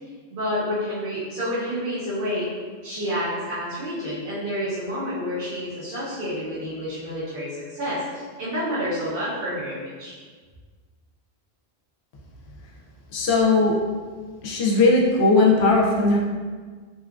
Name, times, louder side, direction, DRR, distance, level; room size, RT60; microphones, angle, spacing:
voice 1, 0.3-2.5 2.8-10.1, equal, 55° right, -11 dB, 0.8 m, -29 dB
voice 2, 13.1-13.7 14.4-16.2, left 3 dB, 80° left, -2 dB, 0.8 m, -18 dB
2.7 x 2.3 x 2.3 m, 1.5 s
omnidirectional pair, 1.1 m